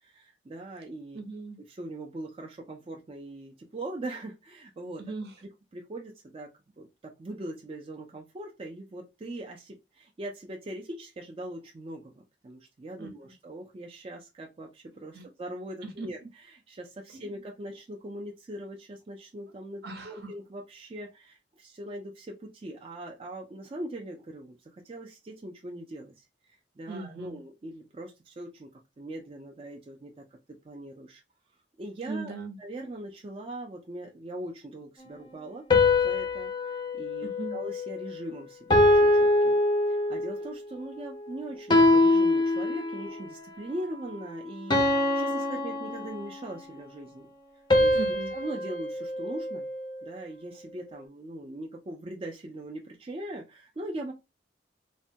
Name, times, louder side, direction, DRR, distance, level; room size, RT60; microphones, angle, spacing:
voice 1, 0.0-1.2 1.6-5.0 5.4-6.5 6.8-31.2 31.8-35.7 36.0-39.6 39.9-47.3 47.8-48.0 48.3-49.7 50.0-54.1, right 1 dB, 30° right, 0.4 m, -41 dB
voice 2, 1.1-1.6 5.0-5.3 13.0-13.3 15.1-15.3 16.0-16.1 17.1-17.3 19.8-20.1 26.9-27.4 32.1-32.6 37.2-37.6 47.9-48.3, right 3 dB, 60° right, 0.7 m, -38 dB
sound 1, 35.7-38.2 38.7-40.5 41.7-43.2 44.7-46.6 47.7-50.1, left 2 dB, 25° left, 0.5 m, -24 dB
3.1 x 2.1 x 2.7 m
head